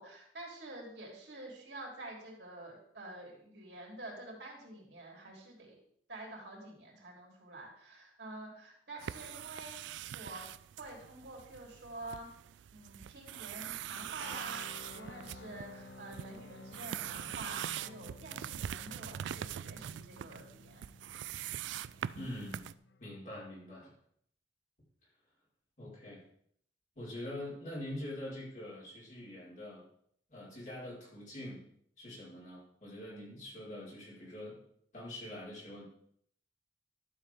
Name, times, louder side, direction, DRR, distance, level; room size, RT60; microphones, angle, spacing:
voice 1, 0.0-5.8 6.1-9.8 10.1-10.4 10.8-12.3 12.7-14.6 14.9-20.9, right 2 dB, 70° right, -1 dB, 3.5 m, -48 dB
sound 1, 9.0-22.7, right 10 dB, 90° right, 0.3 m, -43 dB
sound 2, 14.2-23.1, left 3 dB, 70° left, 0.6 m, -54 dB
voice 2, 22.1-22.7 23.0-23.9 25.8-26.2 26.9-29.8 30.3-31.6 32.0-34.6 34.9-35.8, left 1 dB, 45° left, -6 dB, 4.8 m, -44 dB
12.0 x 7.4 x 3.6 m, 0.66 s
head